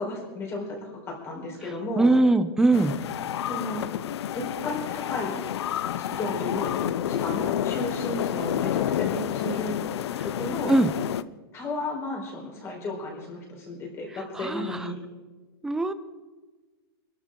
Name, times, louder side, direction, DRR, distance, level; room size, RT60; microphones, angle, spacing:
voice 1, 0.0-2.1 3.5-3.9 4.3-5.4 6.0-9.7 10.2-10.8 11.5-15.0, left 2 dB, 20° left, -1 dB, 4.3 m, -33 dB
voice 2, 2.0-2.9 10.7-10.9 14.4-14.9 15.6-15.9, right 2 dB, 5° right, 11 dB, 0.5 m, -21 dB
sound 1, 2.7-11.2, left 10 dB, 85° left, 0.6 m, -29 dB
26.0 x 13.0 x 3.8 m, 1.3 s
supercardioid pair, 170°, 13 cm